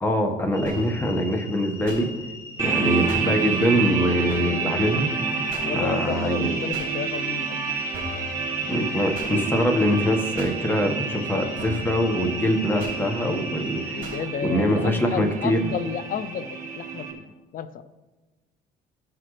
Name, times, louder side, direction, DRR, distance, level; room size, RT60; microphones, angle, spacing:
voice 1, 0.0-2.1 2.6-5.1 5.7-6.5 8.7-14.0 14.4-15.6, equal, 10° left, 2 dB, 1.4 m, -23 dB
sound 1, 0.5-14.2, left 2 dB, 35° left, 3.3 m, -41 dB
sound 2, 0.7-1.0 1.9-2.0 3.1-3.2 4.3-4.6 5.5-5.7 6.7-6.9 7.9-8.3 9.1-9.3 10.4-10.5 11.6-11.9 12.8-13.0 14.0-14.2, equal, 50° right, 3.2 m, -37 dB
sound 3, 2.6-17.1, right 5 dB, 20° right, 2.5 m, -29 dB
voice 2, 5.6-7.8 13.9-17.8, left 7 dB, 55° left, 13 dB, 0.6 m, -32 dB
15.0 x 6.0 x 3.3 m, 1.2 s
cardioid pair, 110°, 17 cm